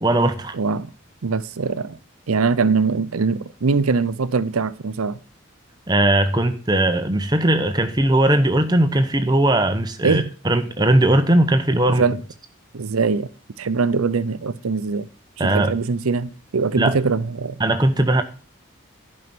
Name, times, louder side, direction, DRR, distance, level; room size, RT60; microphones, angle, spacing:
voice 1, 0.0-0.6 5.9-12.0 15.4-15.7 16.8-17.0 17.6-18.2, right 1 dB, 20° right, 0.9 m, -19 dB
voice 2, 0.5-0.9 1.2-2.0 2.3-5.2 10.0-10.3 11.9-12.2 12.7-13.3 13.6-15.1 15.4-17.6, right 4 dB, 90° right, 0.6 m, -22 dB
11.0 x 5.4 x 6.1 m
head